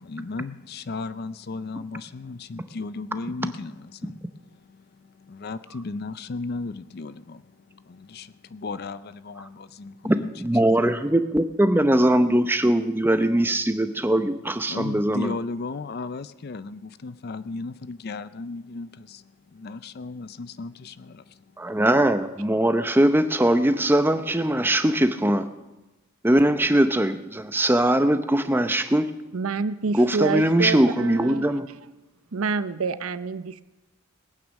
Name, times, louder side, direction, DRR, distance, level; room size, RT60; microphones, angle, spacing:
voice 1, 0.0-10.3 14.7-21.4, left 3 dB, 45° left, 0.4 m, -35 dB
voice 2, 10.0-15.3 21.6-25.5 26.2-29.1 29.9-31.7, right 1 dB, 10° right, 0.6 m, -21 dB
voice 3, 29.3-31.5 32.3-33.6, right 4 dB, 75° right, 0.6 m, -27 dB
20.5 x 9.1 x 6.4 m
head